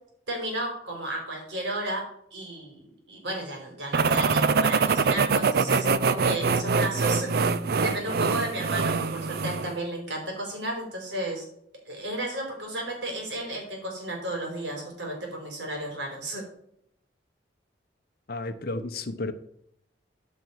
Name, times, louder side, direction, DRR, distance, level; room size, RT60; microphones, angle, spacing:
voice 1, 0.3-7.3 7.8-11.5 11.9-16.4, right 1 dB, 75° right, 1 dB, 3.8 m, -33 dB
sound 1, 3.9-9.7, right 4 dB, 55° right, 0.4 m, -24 dB
voice 2, 18.3-19.3, left 2 dB, 55° left, 9 dB, 0.9 m, -32 dB
13.5 x 5.4 x 4.7 m, 0.71 s
head